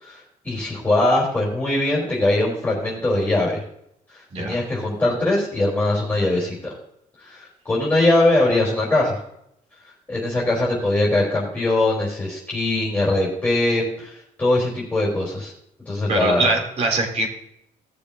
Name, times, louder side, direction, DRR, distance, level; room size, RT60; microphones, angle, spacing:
voice 1, 0.0-3.6 4.1-6.7 7.2-9.2 10.1-15.5 15.9-16.5, left 2 dB, 10° left, -5 dB, 3.7 m, -21 dB
voice 2, 16.1-17.3, right 3 dB, 45° right, 2 dB, 3.0 m, -22 dB
18.5 x 6.9 x 2.7 m, 0.73 s
cardioid pair, 160°, 15 cm